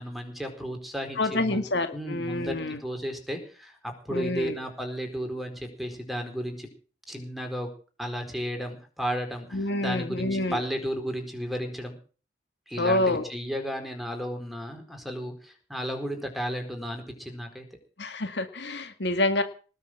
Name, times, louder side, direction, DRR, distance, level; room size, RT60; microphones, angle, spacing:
voice 1, 0.0-1.6 1.9-3.8 4.0-6.7 7.1-7.7 8.0-11.9 12.7-17.6, equal, ahead, 4 dB, 4.4 m, -33 dB
voice 2, 1.2-2.8 4.1-4.5 9.5-10.6 12.8-13.3 18.0-19.4, left 2 dB, 70° left, 8 dB, 2.1 m, -27 dB
19.5 x 7.1 x 8.8 m, 0.39 s
head